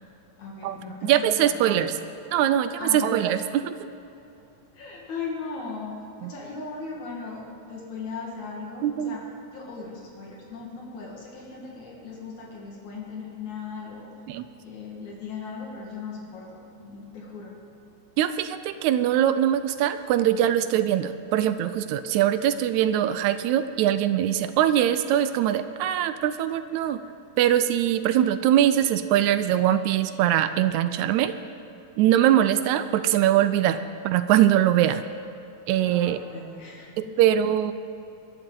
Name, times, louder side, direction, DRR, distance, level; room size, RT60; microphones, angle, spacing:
voice 1, 0.4-1.9 2.8-3.1 4.7-9.2 9.5-14.1 14.6-16.5 16.8-17.5 35.9-37.1, left 4 dB, 70° left, -2 dB, 3.1 m, -38 dB
voice 2, 1.0-2.0 2.3-3.7 6.2-6.3 8.8-9.2 14.3-14.5 18.2-27.0 27.4-31.3 32.0-35.0 35.7-36.2 37.0-37.7, right 11 dB, 80° right, 12 dB, 1.8 m, -22 dB
21.5 x 11.5 x 3.9 m, 2.8 s
omnidirectional pair, 3.5 m